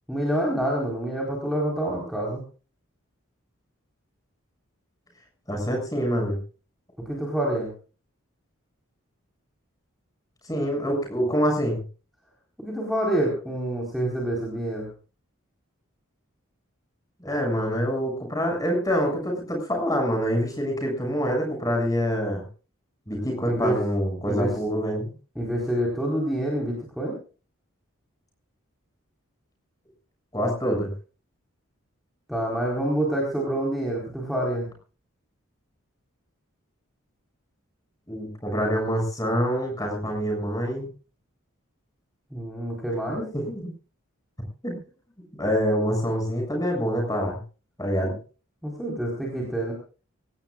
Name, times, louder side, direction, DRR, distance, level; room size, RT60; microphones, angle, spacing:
voice 1, 0.1-2.4 7.1-7.7 12.6-14.9 23.4-23.8 24.2-24.5 25.4-27.2 32.3-34.7 42.3-43.2 48.6-49.7, right 1 dB, ahead, -3 dB, 4.5 m, -27 dB
voice 2, 5.5-6.4 10.5-11.8 17.2-22.4 23.1-25.1 30.3-30.9 38.1-40.9 43.2-43.7 44.6-44.8 45.4-47.4 47.8-48.1, equal, 15° left, 2 dB, 7.2 m, -26 dB
24.5 x 17.5 x 2.5 m, 0.37 s
head